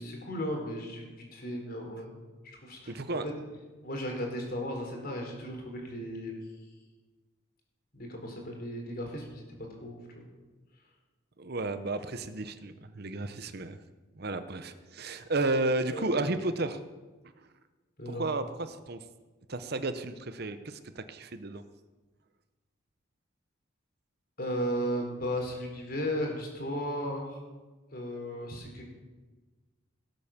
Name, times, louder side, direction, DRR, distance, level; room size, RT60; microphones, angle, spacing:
voice 1, 0.0-2.2 2.4-3.3 3.8-6.3 7.9-9.4 9.8-10.2 15.9-16.2 18.0-18.2 24.4-27.4 27.9-28.8, equal, 50° left, 1 dB, 4.2 m, -35 dB
voice 2, 2.9-3.2 11.4-13.8 14.2-16.8 18.1-19.0 19.5-21.6, right 2 dB, 50° right, 10 dB, 0.9 m, -32 dB
17.5 x 8.7 x 7.3 m, 1.3 s
head